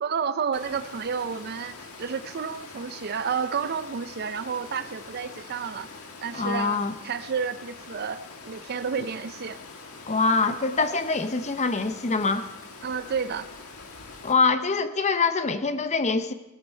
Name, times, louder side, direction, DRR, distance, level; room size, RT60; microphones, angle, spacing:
voice 1, 0.0-5.9 6.2-9.6 12.8-13.5, right 6 dB, 45° right, 14 dB, 0.4 m, -31 dB
Water, 0.5-14.3, left 4 dB, 80° left, 1.6 m, -44 dB
voice 2, 6.3-6.9 10.1-12.5 14.2-16.3, left 4 dB, 30° left, 11 dB, 0.7 m, -24 dB
18.0 x 12.5 x 4.4 m, 0.98 s
head